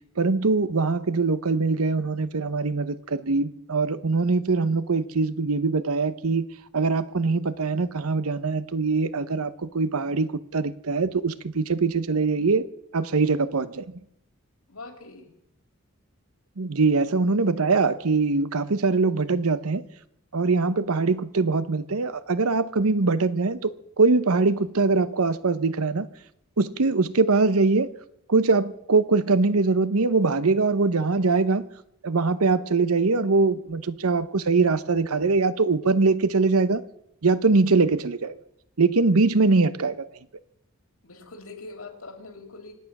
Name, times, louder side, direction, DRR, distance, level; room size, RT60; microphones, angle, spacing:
voice 1, 0.2-6.5 6.7-12.7 12.9-13.8 16.6-19.9 20.3-26.1 26.6-27.9 28.3-31.7 32.0-36.8 37.2-38.3 38.8-40.0, right 3 dB, 85° right, 0.8 m, -22 dB
voice 2, 14.7-15.3 17.1-17.2 41.0-42.7, left 3 dB, 75° left, 2.7 m, -43 dB
25.5 x 9.4 x 6.0 m
head